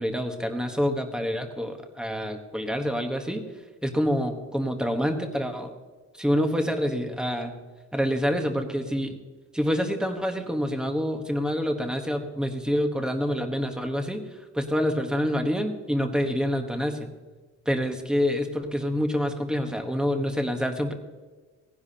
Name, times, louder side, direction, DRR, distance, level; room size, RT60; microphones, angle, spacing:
voice 1, 0.0-3.4 3.8-5.7 6.2-7.6 7.9-9.2 9.5-14.2 14.5-17.1 17.7-20.9, equal, 5° right, 5 dB, 1.1 m, -27 dB
17.5 x 10.5 x 2.8 m, 1.3 s
cardioid pair, 140°, 30 cm